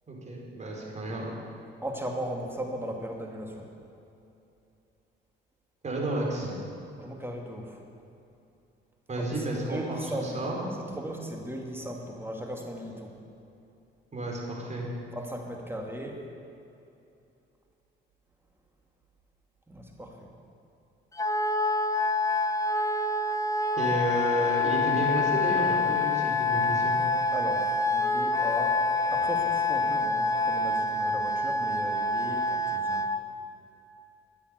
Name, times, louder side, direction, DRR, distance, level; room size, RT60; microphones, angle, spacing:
voice 1, 0.1-1.3 5.8-6.5 9.1-10.6 14.1-14.9 23.8-27.0, right 1 dB, 35° right, -2 dB, 4.8 m, -31 dB
voice 2, 1.8-3.7 7.0-7.8 9.2-10.4 11.0-13.2 15.1-16.2 19.7-20.2 27.3-28.8 29.1-33.0, right 1 dB, 10° right, 1 dB, 2.5 m, -37 dB
Wind instrument woodwind instrument, 21.2-33.2, left 3 dB, 15° left, 0.9 m, -26 dB
13.5 x 9.6 x 9.7 m, 2.7 s
cardioid pair, 90°, 20 cm